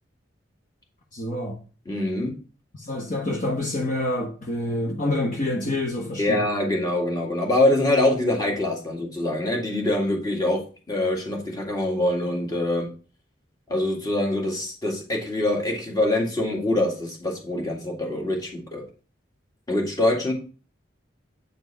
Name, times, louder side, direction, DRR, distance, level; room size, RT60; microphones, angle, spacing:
voice 1, 1.1-1.6 2.8-6.4, left 1 dB, 45° left, 1.0 m, -27 dB
voice 2, 1.9-2.3 6.2-12.9 13.7-18.8 19.7-20.3, left 1 dB, 20° left, 1.9 m, -24 dB
8.5 x 4.4 x 4.2 m
head